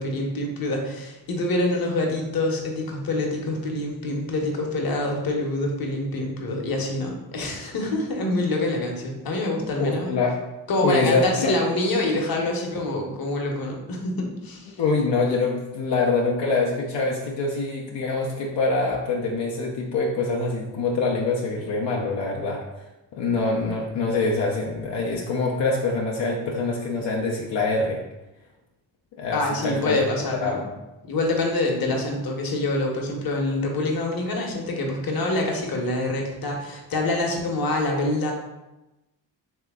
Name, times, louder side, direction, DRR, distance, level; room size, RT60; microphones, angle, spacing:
voice 1, 0.0-10.2 10.7-14.8 29.3-30.7 31.1-38.3, left 2 dB, 55° left, 1 dB, 0.9 m, -26 dB
voice 2, 9.8-10.4 10.8-11.5 14.8-22.6 23.1-28.0 29.1-30.1 30.4-30.6, left 3 dB, 80° left, -2 dB, 0.6 m, -25 dB
3.3 x 2.9 x 3.5 m, 1.0 s
cardioid pair, 65°, 44 cm